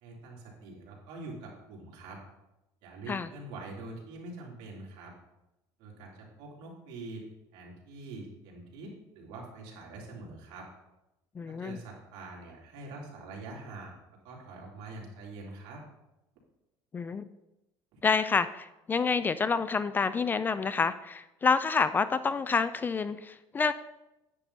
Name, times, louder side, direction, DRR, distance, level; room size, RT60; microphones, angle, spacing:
voice 1, 0.0-2.2 2.8-5.1 5.8-7.2 7.5-10.7 11.5-14.0 14.2-15.8 17.9-18.0, right 2 dB, 70° right, -2 dB, 3.4 m, -44 dB
voice 2, 11.4-11.8 16.9-17.3 18.0-23.7, left 5 dB, 20° left, 14 dB, 0.4 m, -28 dB
9.9 x 9.4 x 4.2 m, 0.95 s
cardioid pair, 135°, 9 cm